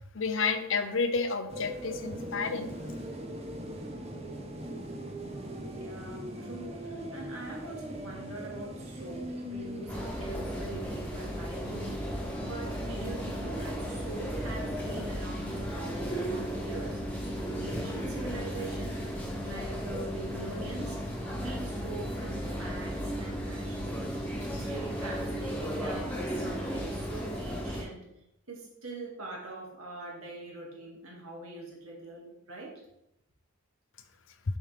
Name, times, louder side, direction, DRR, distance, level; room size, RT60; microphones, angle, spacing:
voice 1, 0.1-2.7, left 4 dB, 65° left, 9 dB, 0.6 m, -30 dB
sound 1, 1.5-16.6, equal, 30° right, 0.8 m, -42 dB
voice 2, 5.7-17.0 17.3-19.1 19.4-21.1 21.4-24.0 24.5-28.0 28.5-32.8, right 2 dB, 85° right, -1 dB, 2.0 m, -43 dB
sound 2, 9.9-27.8, equal, 10° left, 1.3 m, -35 dB
7.2 x 5.3 x 3.3 m, 0.82 s
head